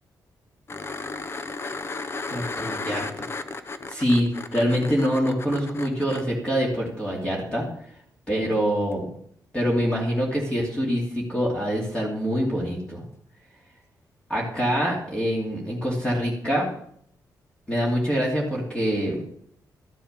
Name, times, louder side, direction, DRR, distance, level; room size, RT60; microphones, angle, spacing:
sound 1, 0.7-6.2 8.9-9.0, left 3 dB, 35° left, 0.8 m, -34 dB
voice 1, 2.3-3.2 3.9-7.7 8.3-9.1 9.5-13.0 14.3-16.7 17.7-19.2, equal, 15° left, -4 dB, 2.9 m, -25 dB
13.5 x 7.6 x 6.8 m, 0.65 s
wide cardioid pair, 150°, 7 cm